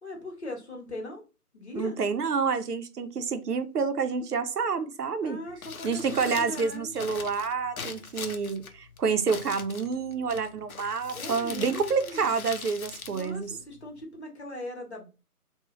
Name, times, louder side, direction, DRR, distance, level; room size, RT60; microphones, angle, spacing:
voice 1, 0.0-1.2 1.5-2.0 5.2-7.1 11.1-12.4 13.1-15.1, left 1 dB, 45° left, 1.0 m, -39 dB
voice 2, 1.7-5.4 5.8-13.5, right 5 dB, 80° right, 0.6 m, -28 dB
Crumpling crinkling, 5.5-14.0, left 5 dB, 65° left, 0.6 m, -42 dB
2.3 x 2.3 x 3.0 m
figure-of-eight pair, 160°, 46 cm